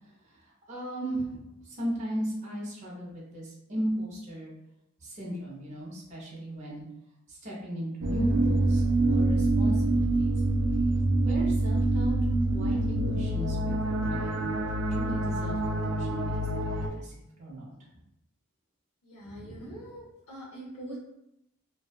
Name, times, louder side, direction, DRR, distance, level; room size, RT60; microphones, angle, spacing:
voice 1, 0.2-4.5 5.0-6.8 7.3-10.3 11.2-12.2 12.5-14.5 14.9-17.7 19.2-19.9, equal, 30° right, -5 dB, 0.6 m, -37 dB
sound 1, 8.0-16.9, right 2 dB, 80° right, 0.4 m, -26 dB
voice 2, 19.0-21.0, right 1 dB, 75° left, -5 dB, 0.7 m, -43 dB
2.5 x 2.2 x 2.2 m, 0.84 s
head